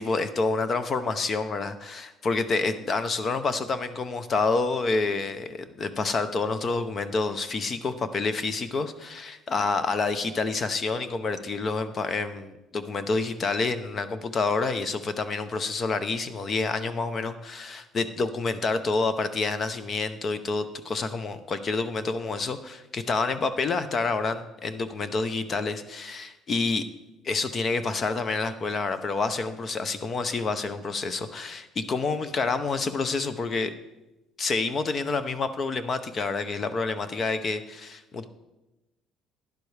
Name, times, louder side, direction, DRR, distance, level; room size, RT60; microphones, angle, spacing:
voice 1, 0.0-26.8 27.2-33.7 34.4-38.2, left 3 dB, 25° left, 12 dB, 0.5 m, -28 dB
11.5 x 10.5 x 3.3 m, 0.98 s
cardioid pair, 170°, 0 cm